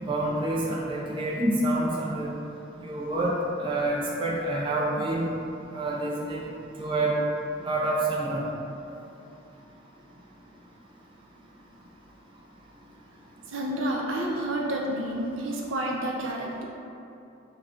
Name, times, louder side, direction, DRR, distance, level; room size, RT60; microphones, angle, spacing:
voice 1, 0.0-2.3 2.8-5.3 5.7-6.5 6.8-7.2 7.6-8.4, right 1 dB, 25° right, -4 dB, 0.4 m, -27 dB
voice 2, 13.5-16.6, right 1 dB, 80° right, -2 dB, 0.6 m, -29 dB
4.9 x 2.2 x 3.6 m, 2.7 s
head